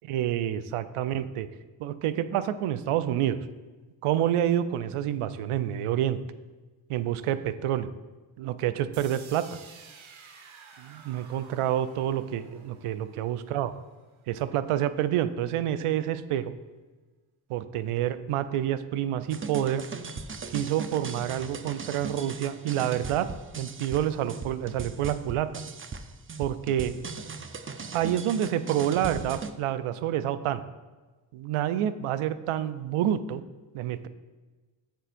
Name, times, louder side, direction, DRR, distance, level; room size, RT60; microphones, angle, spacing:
voice 1, 0.0-1.5 1.8-3.4 4.0-6.2 6.9-7.9 8.4-9.6 10.8-13.7 14.3-16.5 17.5-19.8 20.5-23.3 23.5-25.5 26.4-27.2 27.9-30.6 31.3-33.4 33.7-34.1, right 11 dB, 85° right, 13 dB, 0.6 m, -28 dB
sound 1, 8.9-14.9, right 6 dB, 70° right, 1.2 m, -52 dB
sound 2, 19.3-29.5, right 4 dB, 25° right, 0.6 m, -38 dB
10.0 x 7.7 x 2.5 m, 1.2 s
cardioid pair, 60°, 50 cm